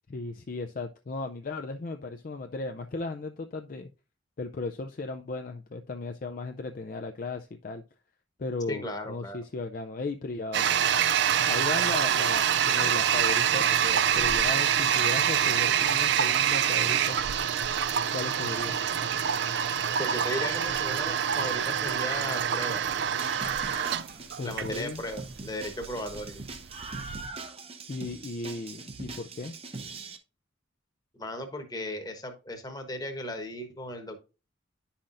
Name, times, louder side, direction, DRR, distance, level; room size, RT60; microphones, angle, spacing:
voice 1, 0.1-3.9 4.4-7.8 8.4-10.8 11.4-17.2 18.1-18.8 24.4-25.0 27.9-29.6, left 3 dB, 45° left, 5 dB, 0.4 m, -36 dB
voice 2, 8.7-9.4 20.0-23.0 24.4-26.4 31.1-34.2, left 1 dB, 20° left, 5 dB, 1.1 m, -36 dB
Toilet flush, 10.5-27.3, right 8 dB, 60° right, 0.4 m, -26 dB
Screaming, 23.2-30.2, right 3 dB, 30° right, 0.7 m, -41 dB
10.0 x 5.7 x 2.5 m, 0.31 s
head